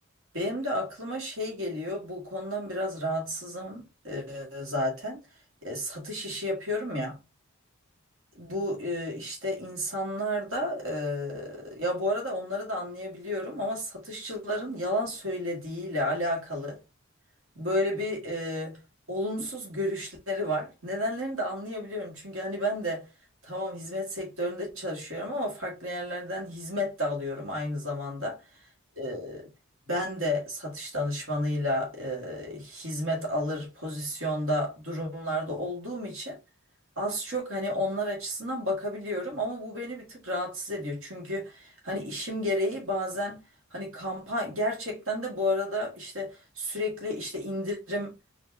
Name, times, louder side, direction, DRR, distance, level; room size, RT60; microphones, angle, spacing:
voice 1, 0.3-5.2 5.6-7.2 8.4-16.8 17.6-18.8 19.1-23.1 23.4-28.4 29.0-29.5 29.9-36.4 37.0-43.4 43.7-48.2, left 1 dB, 70° right, 1.8 m, -32 dB
4.1 x 2.8 x 3.5 m
head